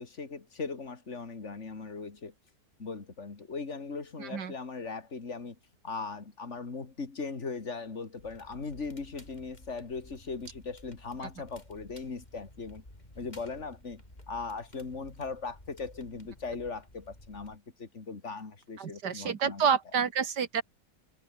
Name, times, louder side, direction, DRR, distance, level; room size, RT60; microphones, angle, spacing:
voice 1, 0.0-2.3 2.8-5.6 5.8-12.8 13.1-14.0 14.3-19.6, left 4 dB, 45° left, 2.9 m, -39 dB
voice 2, 4.2-4.5 18.8-20.6, right 7 dB, 90° right, 2.4 m, -29 dB
Crackle, 8.2-17.6, left 1 dB, 25° left, 5.5 m, -54 dB
omnidirectional pair, 1.7 m